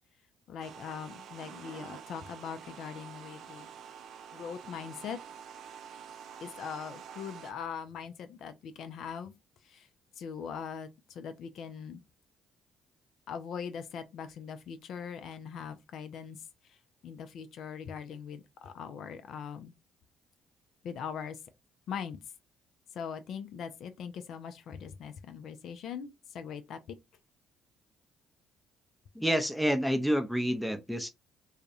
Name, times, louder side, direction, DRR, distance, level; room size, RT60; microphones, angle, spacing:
voice 1, 0.5-3.7 4.3-5.2 6.4-9.3 9.6-9.9 10.2-12.0 13.3-16.8 17.0-19.7 20.8-21.4 21.9-22.2 22.9-27.0, left 7 dB, 65° left, 0.3 m, -41 dB
sound 1, 0.6-7.5, right 7 dB, 65° right, 0.3 m, -47 dB
voice 2, 29.1-31.1, equal, ahead, 0.5 m, -28 dB
2.3 x 2.1 x 2.7 m
hypercardioid pair, 60°, 0 cm